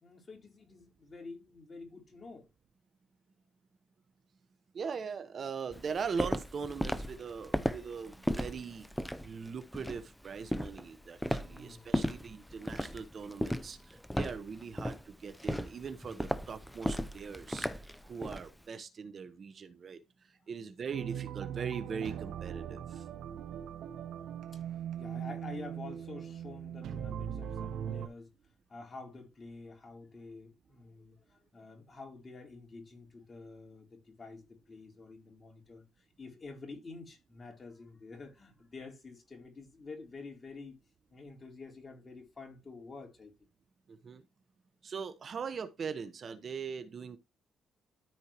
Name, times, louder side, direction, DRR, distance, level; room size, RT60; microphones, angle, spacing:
voice 1, 0.0-2.5 11.4-12.1 20.4-20.5 24.5-24.6 25.0-28.3 28.7-40.8 41.1-43.3, left 3 dB, 35° left, 3.3 m, -49 dB
voice 2, 4.7-8.9 9.2-17.7 18.0-20.0 20.5-23.0 43.9-44.2 44.8-47.2, right 6 dB, 50° right, 1.0 m, -40 dB
Walk footsteps, 5.7-18.5, equal, 5° left, 0.7 m, -36 dB
sound 1, 20.9-28.1, right 9 dB, 75° right, 1.2 m, -40 dB
13.5 x 4.5 x 2.9 m
cardioid pair, 90°, 0 cm